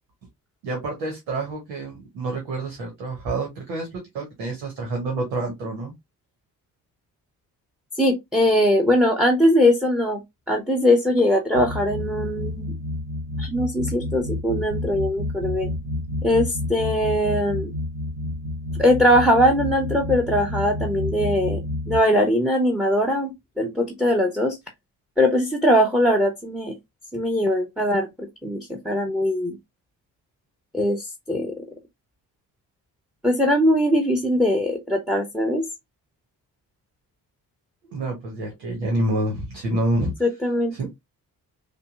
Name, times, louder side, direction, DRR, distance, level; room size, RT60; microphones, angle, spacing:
voice 1, 0.6-5.9 37.9-40.1 40.7-40.9, right 2 dB, 80° right, 1.1 m, -28 dB
voice 2, 8.0-10.2 10.5-12.7 13.4-15.7 16.2-17.7 18.7-21.6 21.9-24.6 25.2-26.7 27.1-29.6 30.7-31.6 33.2-35.6 40.2-40.7, equal, ahead, 0.9 m, -21 dB
sound 1, 11.5-22.0, left 2 dB, 60° right, 1.3 m, -29 dB
5.2 x 2.2 x 2.5 m
hypercardioid pair, 40°, 49 cm